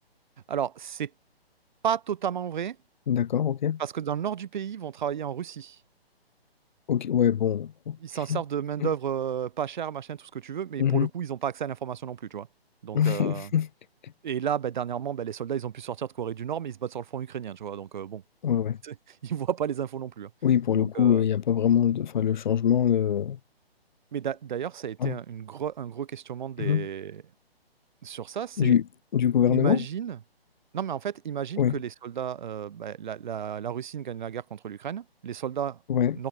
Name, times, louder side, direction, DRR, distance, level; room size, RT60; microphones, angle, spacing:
voice 1, 0.5-1.1 1.8-2.8 3.8-5.8 8.0-12.5 12.8-13.5 14.2-18.2 18.8-20.3 20.7-21.2 24.1-27.2 28.0-28.8 29.5-30.2 30.7-35.8 36.1-36.3, right 9 dB, 50° right, 3.4 m, -32 dB
voice 2, 3.1-3.8 6.9-8.0 8.3-8.4 8.8-8.9 10.8-11.1 12.9-13.7 18.4-18.8 20.4-23.4 25.0-25.2 26.6-26.9 28.6-28.8 29.1-29.8 31.6-31.8 35.9-36.2, left 9 dB, 45° left, 3.9 m, -23 dB
figure-of-eight pair, 140°, 31 cm